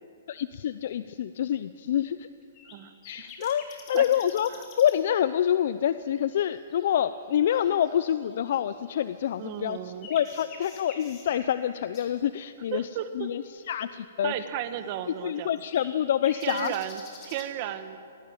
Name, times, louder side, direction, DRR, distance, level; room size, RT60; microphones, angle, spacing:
voice 1, 0.3-2.3 3.1-4.5 4.8-12.9 13.1-14.3 15.2-16.7, left 10 dB, 55° left, 14 dB, 0.5 m, -27 dB
sound 1, 2.4-2.8 3.0-5.0 5.5-5.6 6.1-9.0 9.5-12.1 14.1-14.2 14.8-14.9 15.3-17.4, left 4 dB, 30° left, 3.4 m, -48 dB
voice 2, 9.4-10.1 12.7-13.3 14.2-15.6 16.4-18.0, right 11 dB, 40° right, 10 dB, 1.3 m, -34 dB
18.0 x 16.5 x 8.8 m, 2.5 s
hypercardioid pair, 155°, 0 cm